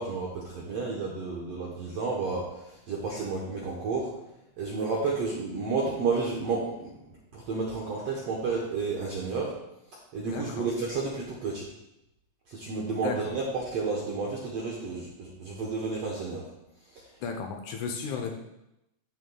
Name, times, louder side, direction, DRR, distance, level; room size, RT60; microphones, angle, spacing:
voice 1, 0.0-4.1 4.6-6.9 7.3-9.6 10.1-11.7 12.5-16.5, right 4 dB, 75° right, -3 dB, 1.4 m, -31 dB
voice 2, 10.3-10.7 13.0-13.2 17.2-18.4, left 6 dB, 80° left, 3 dB, 1.7 m, -34 dB
12.5 x 6.4 x 2.3 m, 0.89 s
omnidirectional pair, 4.3 m